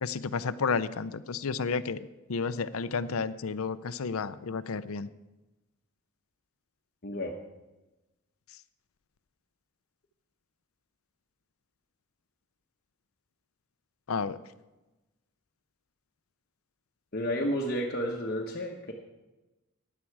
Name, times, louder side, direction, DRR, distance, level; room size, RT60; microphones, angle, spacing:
voice 1, 0.0-5.1 14.1-14.4, left 5 dB, 90° left, 15 dB, 0.6 m, -31 dB
voice 2, 7.0-7.3 17.1-18.9, equal, 50° left, 0 dB, 1.1 m, -31 dB
15.5 x 10.0 x 4.7 m, 1.1 s
head